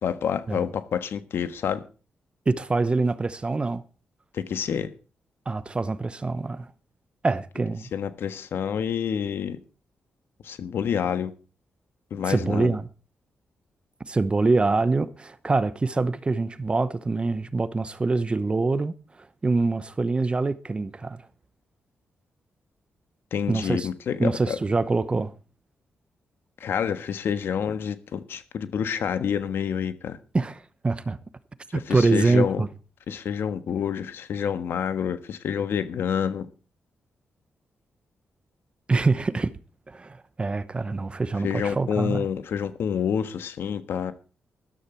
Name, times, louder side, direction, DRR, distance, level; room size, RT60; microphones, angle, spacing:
voice 1, 0.0-1.8 4.3-4.9 7.9-9.6 10.4-11.3 12.1-12.8 23.3-24.6 26.6-30.2 31.7-32.6 33.1-36.5 41.4-44.1, left 8 dB, 75° left, 1.5 m, -28 dB
voice 2, 2.5-3.8 5.5-6.7 7.2-7.9 12.3-12.9 14.1-18.9 19.4-21.2 23.5-23.9 24.2-25.3 30.3-31.2 31.7-32.7 38.9-39.5 39.9-42.3, right 3 dB, 25° right, 0.9 m, -25 dB
13.0 x 13.0 x 4.6 m
cardioid pair, 95°, 4 cm